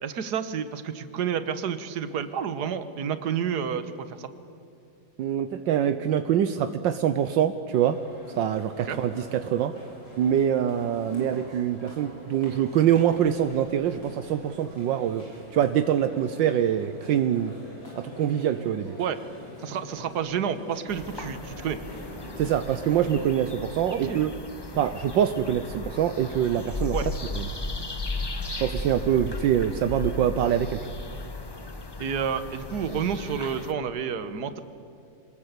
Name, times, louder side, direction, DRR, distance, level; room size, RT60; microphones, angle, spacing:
voice 1, 0.0-4.3 8.8-9.0 19.0-19.2 19.6-21.8 23.9-24.2 26.9-27.1 32.0-34.6, right 7 dB, 60° right, 11 dB, 1.7 m, -30 dB
voice 2, 5.2-8.0 8.4-9.7 10.2-15.2 15.5-17.6 18.0-19.0 22.4-24.3 24.7-26.9 27.4-27.5 28.6-30.8, right 10 dB, 75° right, 10 dB, 1.5 m, -24 dB
sound 1, 7.7-23.0, left 1 dB, 85° left, 7.7 m, -45 dB
sound 2, 20.9-33.7, left 2 dB, 20° left, 0.6 m, -36 dB
25.0 x 20.0 x 8.2 m, 2.6 s
omnidirectional pair, 2.1 m